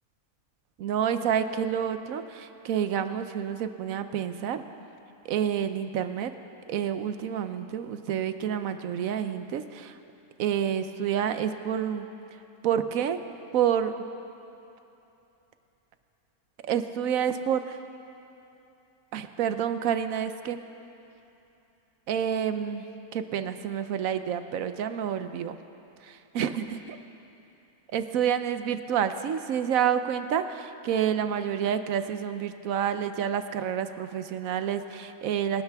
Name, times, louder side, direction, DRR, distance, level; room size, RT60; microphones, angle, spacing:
voice 1, 0.8-4.6 5.2-6.3 6.7-10.0 10.4-12.1 12.6-13.2 13.5-13.9 16.6-17.8 19.1-20.6 22.1-22.9 23.1-25.6 26.0-26.8 27.9-35.6, right 9 dB, 70° right, 10 dB, 1.1 m, -28 dB
26.5 x 12.5 x 3.5 m, 2.9 s
omnidirectional pair, 1.5 m